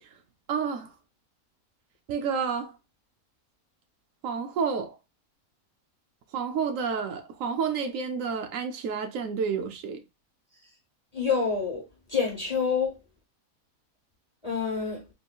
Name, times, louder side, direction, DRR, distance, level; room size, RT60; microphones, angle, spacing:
voice 1, 0.5-0.9 2.1-2.7 4.2-5.0 6.3-10.0, right 6 dB, 70° right, 0.9 m, -30 dB
voice 2, 11.1-11.8 12.1-13.0 14.4-15.0, left 5 dB, 35° left, 0.8 m, -27 dB
3.6 x 2.9 x 2.3 m
omnidirectional pair, 1.5 m